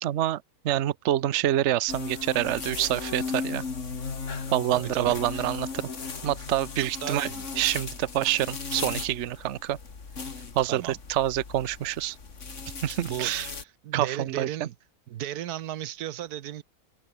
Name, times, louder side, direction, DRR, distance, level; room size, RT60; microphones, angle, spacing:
voice 1, 0.0-3.6 4.5-5.9 6.2-7.3 7.6-9.8 10.5-12.2 12.8-13.5 13.9-14.7, right 13 dB, 55° right, 1.0 m, -27 dB
sound 1, 1.9-13.6, left 5 dB, 50° left, 2.4 m, -37 dB
voice 2, 4.7-5.4 6.8-7.4 10.7-11.0 12.9-14.7 15.1-16.6, right 12 dB, 85° right, 1.3 m, -36 dB
omnidirectional pair, 1.6 m